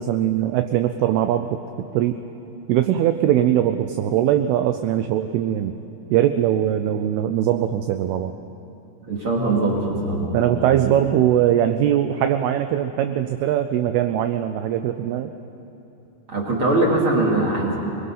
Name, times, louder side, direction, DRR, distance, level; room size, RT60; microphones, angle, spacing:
voice 1, 0.0-1.6 1.9-2.2 2.7-5.7 6.1-8.3 10.3-15.3, right 11 dB, 80° right, 8 dB, 2.4 m, -21 dB
voice 2, 9.1-10.6 16.3-17.8, right 2 dB, 35° right, -3 dB, 2.8 m, -21 dB
23.5 x 21.5 x 5.6 m, 2.9 s
omnidirectional pair, 5.0 m